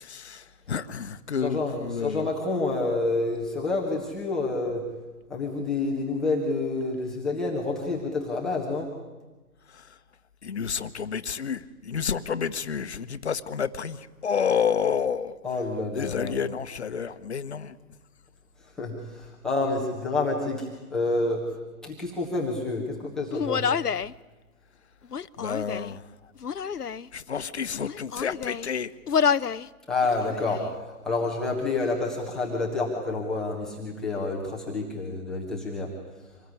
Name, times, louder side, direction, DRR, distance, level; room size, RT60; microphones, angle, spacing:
voice 1, 0.0-2.3 9.7-9.9 10.4-15.4 15.9-17.8 25.4-26.0 27.1-28.9, left 7 dB, 45° left, 12 dB, 1.2 m, -30 dB
voice 2, 1.4-4.8 5.3-8.9 15.4-16.3 18.6-21.4 21.8-23.6 29.9-35.9, left 3 dB, ahead, -6 dB, 1.0 m, -28 dB
Human voice, 23.3-24.1 25.0-26.0 26.4-27.1 27.7-28.7 29.1-29.7 30.0-30.7, left 7 dB, 90° left, 0.8 m, -28 dB
25.5 x 19.5 x 9.6 m, 1.2 s
figure-of-eight pair, 155°, 45 cm